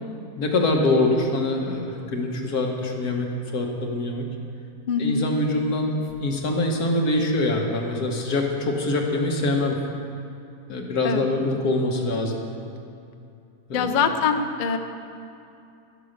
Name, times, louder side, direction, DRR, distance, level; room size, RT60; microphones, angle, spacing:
voice 1, 0.4-4.3 5.0-9.8 10.7-12.4 13.7-14.0, left 2 dB, 85° left, 1 dB, 1.8 m, -24 dB
voice 2, 4.9-5.3 11.0-11.2 13.7-14.8, left 6 dB, 50° left, 7 dB, 0.6 m, -23 dB
11.5 x 8.5 x 6.5 m, 2.5 s
omnidirectional pair, 1.6 m